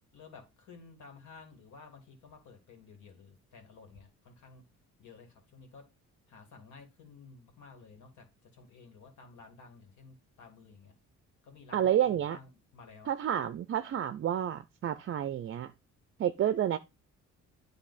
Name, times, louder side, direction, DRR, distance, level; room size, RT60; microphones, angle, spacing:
voice 1, 0.1-4.6 5.0-5.8 6.3-10.9 11.4-13.1, left 4 dB, 75° left, 2.3 m, -53 dB
voice 2, 11.7-12.4 13.1-15.7 16.2-16.8, right 10 dB, 45° right, 0.5 m, -29 dB
9.7 x 3.3 x 4.1 m
cardioid pair, 90°, 30 cm